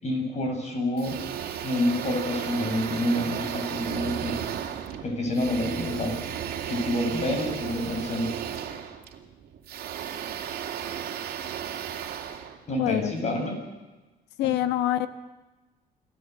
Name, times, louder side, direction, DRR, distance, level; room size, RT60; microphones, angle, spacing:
voice 1, 0.0-1.2 1.6-4.4 5.0-6.1 6.7-8.4 12.7-13.6 14.4-14.5, left 1 dB, 40° left, 2 dB, 7.6 m, -28 dB
sound 1, 1.0-13.2, right 9 dB, 70° right, 2.5 m, -34 dB
voice 2, 12.8-13.5 14.4-15.1, left 13 dB, 85° left, 11 dB, 1.3 m, -26 dB
28.0 x 13.0 x 8.4 m, 1.2 s
cardioid pair, 110°, 17 cm